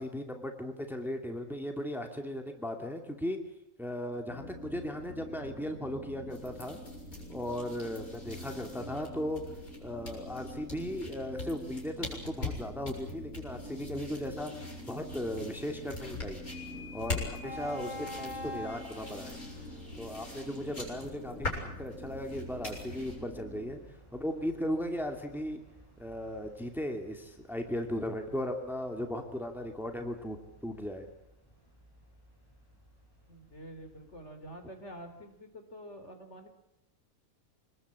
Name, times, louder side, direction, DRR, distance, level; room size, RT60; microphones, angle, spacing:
voice 1, 0.0-3.4 3.8-6.8 7.3-9.4 9.8-14.5 14.9-16.4 16.9-19.4 20.0-23.8 24.1-25.6 26.0-30.4 30.6-31.1, left 1 dB, ahead, 4 dB, 2.5 m, -37 dB
sound 1, 4.3-23.8, left 1 dB, 85° right, 3.3 m, -46 dB
sound 2, 6.3-23.2, left 3 dB, 85° left, 7.7 m, -43 dB
sound 3, 16.5-34.2, left 1 dB, 15° left, 8.0 m, -49 dB
voice 2, 33.3-36.5, equal, 50° left, 6 dB, 3.8 m, -47 dB
26.5 x 20.0 x 8.5 m, 0.84 s
omnidirectional pair, 1.5 m